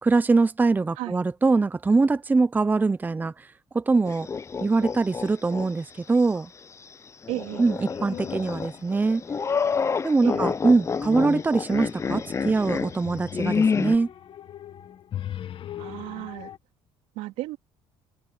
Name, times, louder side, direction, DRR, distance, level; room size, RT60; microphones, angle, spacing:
voice 1, 0.0-3.5 3.7-4.3 4.6-6.5 7.6-9.2 10.0-14.1, right 3 dB, 15° right, 0.6 m, -23 dB
sound 1, 4.0-5.7 6.1-6.2 7.2-14.0, left 5 dB, 25° left, 0.7 m, -28 dB
voice 2, 7.3-7.7 10.2-10.5 15.8-16.5 17.1-17.6, right 18 dB, 90° right, 3.4 m, -34 dB
sound 2, 7.9-8.9 9.2-9.8 10.6-16.6, left 11 dB, 45° left, 1.6 m, -41 dB
cardioid pair, 115°, 12 cm